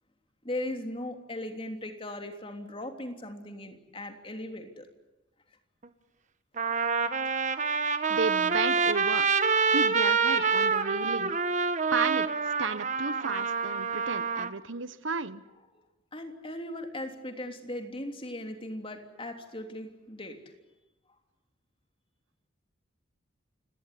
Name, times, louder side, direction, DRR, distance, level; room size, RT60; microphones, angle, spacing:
voice 1, 0.4-4.9 7.2-7.3 16.1-20.4, left 1 dB, 25° left, 5 dB, 3.3 m, -38 dB
Trumpet, 5.8-5.9 6.6-14.5, right 5 dB, 40° right, 1.3 m, -27 dB
voice 2, 8.1-9.3 9.7-11.4 11.9-15.4, right 4 dB, 70° right, 14 dB, 1.1 m, -33 dB
30.0 x 18.0 x 9.9 m, 1.0 s
head